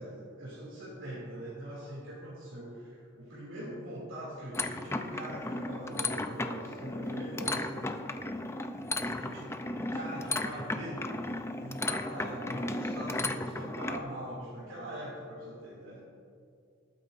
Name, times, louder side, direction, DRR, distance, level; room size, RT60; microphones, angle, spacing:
voice 1, 0.0-8.2 9.2-16.0, right 1 dB, 85° right, -7 dB, 2.7 m, -42 dB
sound 1, 4.5-14.0, left 2 dB, 15° left, 0.5 m, -35 dB
20.0 x 9.0 x 2.6 m, 2.4 s
head